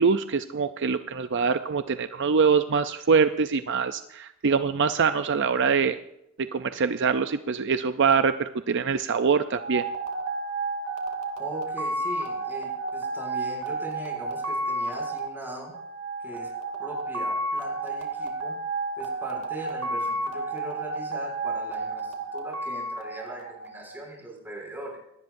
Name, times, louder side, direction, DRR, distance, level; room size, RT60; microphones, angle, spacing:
voice 1, 0.0-6.0 6.5-9.8, right 5 dB, 60° right, 10 dB, 0.6 m, -24 dB
sound 1, 9.6-24.0, right 2 dB, 85° right, 2.6 m, -31 dB
voice 2, 11.4-15.7 16.2-16.5 16.8-18.6 18.9-25.0, right 1 dB, 10° right, -1 dB, 6.7 m, -40 dB
24.5 x 18.5 x 2.6 m, 0.80 s
head